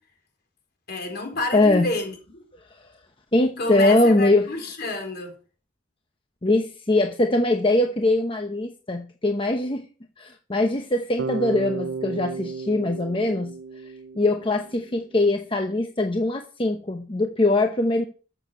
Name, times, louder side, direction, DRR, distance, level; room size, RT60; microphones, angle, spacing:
voice 1, 0.9-2.4 3.6-5.4, left 2 dB, 55° left, 4.0 m, -29 dB
voice 2, 1.5-1.9 3.3-4.5 6.4-9.9 10.2-13.5 13.8-18.0, left 2 dB, 25° left, 0.9 m, -22 dB
Bass guitar, 11.2-15.1, right 4 dB, 75° right, 0.7 m, -33 dB
14.0 x 7.0 x 5.5 m
head